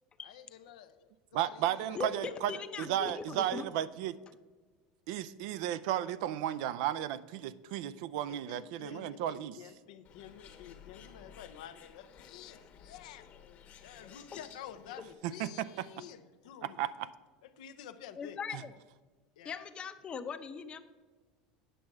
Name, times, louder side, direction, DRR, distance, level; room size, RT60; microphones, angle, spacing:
voice 1, 0.2-2.7 8.3-13.3 13.8-16.9 17.4-18.4 19.4-19.7, left 10 dB, 85° left, 10 dB, 0.6 m, -50 dB
voice 2, 1.3-2.5 2.8-4.2 5.1-9.6 15.2-15.5 16.6-17.1 18.5-18.6, right 12 dB, 70° right, 16 dB, 0.4 m, -34 dB
voice 3, 1.9-3.7 18.2-18.7 19.4-20.8, left 6 dB, 30° left, 10 dB, 0.6 m, -40 dB
Bird, 10.0-15.1, left 8 dB, 45° left, 1.1 m, -55 dB
8.9 x 6.2 x 4.6 m, 1.4 s
supercardioid pair, 120°, 4 cm